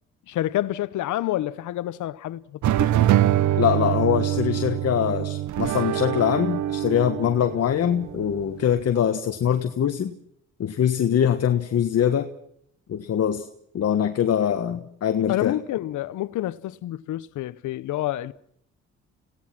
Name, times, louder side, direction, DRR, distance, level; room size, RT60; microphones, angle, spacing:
voice 1, 0.3-2.4 2.8-2.9 15.3-18.3, left 14 dB, 75° left, 0.9 m, -28 dB
sound 1, 2.6-8.8, right 13 dB, 70° right, 0.8 m, -24 dB
voice 2, 3.6-10.1 10.6-12.3 12.9-13.4 13.7-15.6, left 9 dB, 55° left, 1.4 m, -23 dB
27.0 x 17.5 x 6.0 m
cardioid pair, 90°, 30 cm